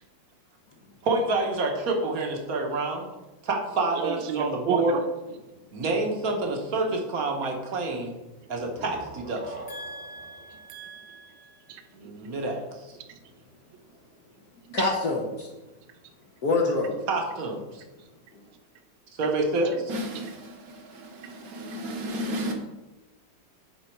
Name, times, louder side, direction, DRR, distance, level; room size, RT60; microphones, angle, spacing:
voice 1, 1.0-3.1 3.4-5.0 5.7-8.1 8.5-9.6 11.9-13.0 17.1-17.8 19.2-22.5, right 2 dB, 55° right, 2 dB, 1.5 m, -28 dB
voice 2, 4.0-5.0 10.7-11.8 13.1-13.2, right 7 dB, 85° right, 8 dB, 1.4 m, -32 dB
sound 1, 8.4-12.0, right 1 dB, 5° right, 1.0 m, -45 dB
voice 3, 9.7-10.7 14.7-15.5 16.4-17.0, left 3 dB, 60° left, 0 dB, 1.4 m, -27 dB
9.5 x 4.0 x 4.5 m, 1.1 s
omnidirectional pair, 2.0 m